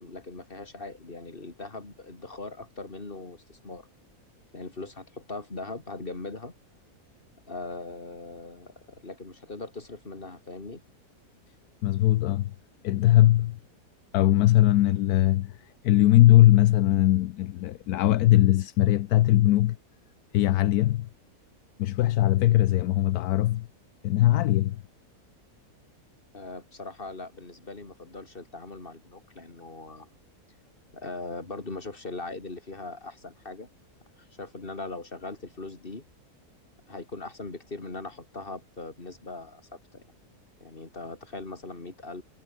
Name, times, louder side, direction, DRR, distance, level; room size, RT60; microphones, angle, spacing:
voice 1, 0.0-3.9 4.5-6.5 7.5-10.8 26.3-30.1 30.9-33.7 34.4-36.0 36.9-40.0 40.6-42.2, left 3 dB, 35° left, 3.3 m, -40 dB
voice 2, 11.8-12.5 12.8-13.6 14.1-19.8 20.3-21.1 21.8-23.7 24.0-24.8, left 14 dB, 75° left, 1.1 m, -21 dB
omnidirectional pair, 1.7 m